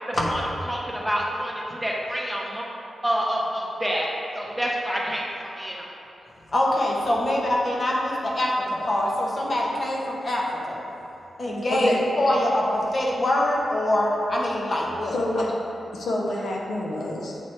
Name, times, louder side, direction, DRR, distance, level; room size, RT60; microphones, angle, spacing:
voice 1, 0.1-2.6 3.0-4.1 4.3-5.9, equal, 5° right, -3 dB, 0.9 m, -28 dB
voice 2, 6.5-10.8 11.4-15.2, left 1 dB, 45° left, -3 dB, 1.1 m, -24 dB
voice 3, 15.1-15.5 15.9-17.4, left 1 dB, 90° left, -2 dB, 0.7 m, -27 dB
7.6 x 3.0 x 4.4 m, 2.9 s
cardioid pair, 85°, 0 cm